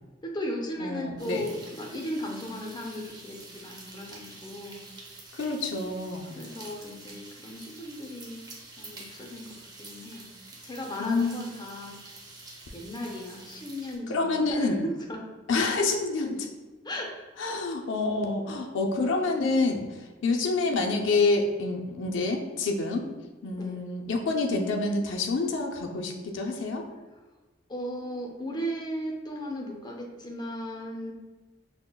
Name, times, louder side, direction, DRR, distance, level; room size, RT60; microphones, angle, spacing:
voice 1, 0.2-4.8 6.3-8.5 8.8-10.3 10.6-12.0 12.7-14.7 15.1-15.2 16.8-17.1 23.5-23.8 27.7-31.1, equal, 25° left, 0 dB, 0.5 m, -36 dB
voice 2, 0.8-1.4 5.4-6.3 11.0-11.4 14.1-14.8 15.5-16.5 17.4-19.9 20.2-23.1 23.4-26.8, left 3 dB, 80° left, 2 dB, 0.5 m, -27 dB
sound 1, 1.2-14.0, right 2 dB, 20° right, 0.6 m, -47 dB
5.9 x 2.0 x 2.2 m, 1.3 s
head